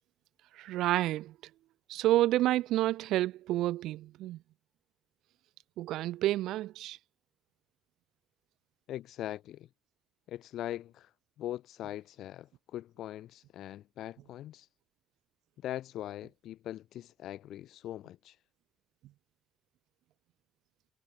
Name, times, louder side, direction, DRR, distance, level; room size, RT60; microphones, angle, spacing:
voice 1, 0.6-1.3 1.9-4.4 5.8-7.0, right 15 dB, 90° right, 1.3 m, -29 dB
voice 2, 8.9-9.7 10.3-11.1 11.4-14.7 15.6-18.4, left 13 dB, 80° left, 3.0 m, -41 dB
cardioid pair, 90°, 0 cm